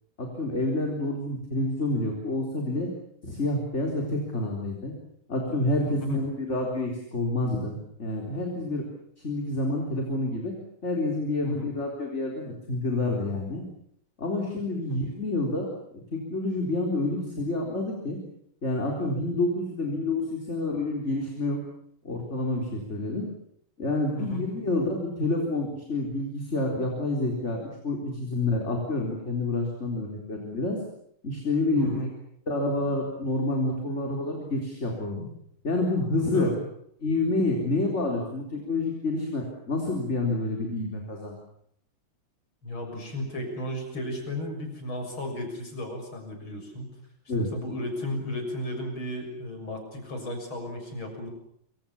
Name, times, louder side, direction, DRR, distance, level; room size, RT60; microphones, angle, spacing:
voice 1, 0.2-2.9 3.2-4.9 5.3-8.9 9.2-10.5 10.8-13.7 14.2-15.7 16.1-18.2 18.6-21.6 22.0-23.3 23.8-30.8 31.2-32.1 32.5-35.3 35.6-36.5 37.0-41.4 47.3-47.5, left 2 dB, 30° left, 1 dB, 4.2 m, -28 dB
voice 2, 5.8-6.3 11.4-11.7 14.9-15.0 24.2-24.5 31.8-32.1 36.3-36.5 42.6-46.9 47.4-51.3, left 1 dB, 65° left, 4 dB, 7.5 m, -34 dB
26.5 x 26.0 x 7.2 m, 0.70 s
omnidirectional pair, 2.4 m